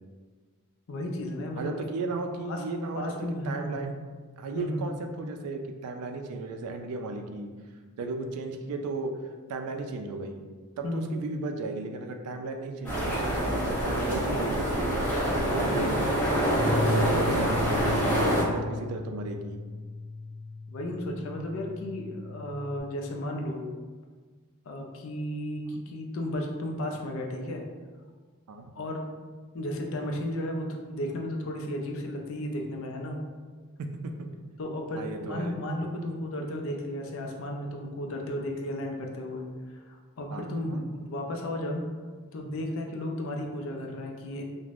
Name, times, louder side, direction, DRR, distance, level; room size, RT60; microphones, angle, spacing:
voice 1, 0.9-1.8 2.5-2.6 2.9-3.9 4.5-4.8 10.8-11.2 15.7-15.9 16.6-17.0 20.7-23.6 24.7-27.7 28.8-29.0 29.5-33.2 34.6-39.5 39.8-41.9 42.3-44.4, left 1 dB, 65° left, 2 dB, 0.4 m, -34 dB
voice 2, 1.6-3.9 4.4-7.5 8.0-9.1 9.5-10.4 10.8-15.1 15.3-19.6 28.5-28.7 34.0-34.1 35.0-35.5 40.3-40.8, right 3 dB, 85° right, 6 dB, 0.3 m, -35 dB
sound 1, 12.8-18.4, equal, 5° left, 0.8 m, -26 dB
Bass guitar, 16.6-22.8, left 2 dB, 90° left, 0.8 m, -35 dB
2.4 x 2.1 x 3.2 m, 1.5 s
head